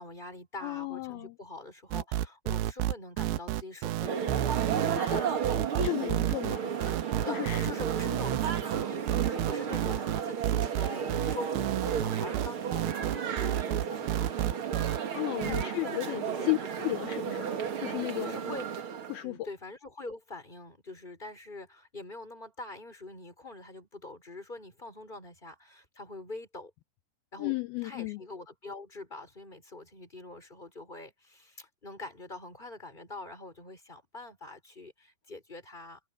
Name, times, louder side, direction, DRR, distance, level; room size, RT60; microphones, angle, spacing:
voice 1, 0.0-4.3 7.2-14.3 15.5-16.5 18.2-18.6 19.2-26.7 27.3-27.5 27.8-36.0, left 2 dB, 10° left, 5.5 m, -44 dB
voice 2, 0.6-1.3 4.9-5.3 5.8-7.0 7.2-7.7 14.8-16.6 16.8-18.5 19.1-19.5 27.4-28.2, left 20 dB, 80° left, 2.2 m, -34 dB
sound 1, 1.9-15.0 15.4-15.6, right 13 dB, 80° right, 2.5 m, -30 dB
sound 2, 4.1-19.2, right 7 dB, 50° right, 1.6 m, -33 dB
omnidirectional pair, 5.1 m